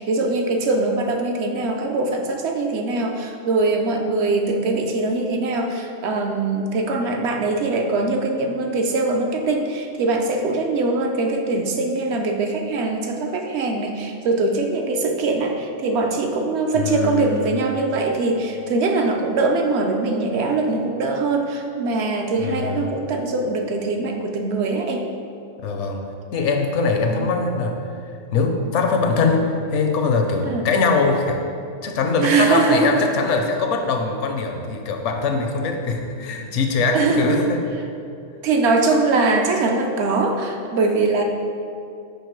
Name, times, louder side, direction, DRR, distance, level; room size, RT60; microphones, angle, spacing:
voice 1, 0.0-25.1 27.1-27.2 30.4-30.6 32.2-33.1 36.9-37.5 38.4-41.2, right 3 dB, 70° right, 3 dB, 0.8 m, -22 dB
voice 2, 16.7-17.5 22.4-22.9 25.6-26.0 26.3-27.8 28.3-31.4 31.8-37.6, left 4 dB, 75° left, 4 dB, 0.9 m, -22 dB
6.5 x 5.0 x 3.1 m, 2.5 s
omnidirectional pair, 1.2 m